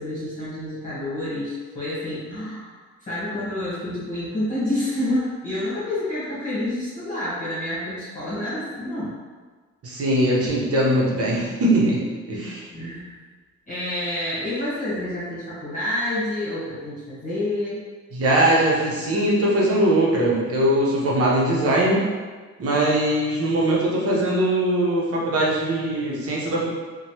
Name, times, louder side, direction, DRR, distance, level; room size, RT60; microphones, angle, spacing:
voice 1, 0.0-9.1 12.7-13.1 13.7-17.8, left 1 dB, 25° left, -11 dB, 1.3 m, -28 dB
voice 2, 9.8-12.0 12.3-12.7 18.1-22.0 22.6-26.7, right 1 dB, 50° right, -5 dB, 0.9 m, -21 dB
3.0 x 2.2 x 2.8 m, 1.4 s
cardioid pair, 90°, 30 cm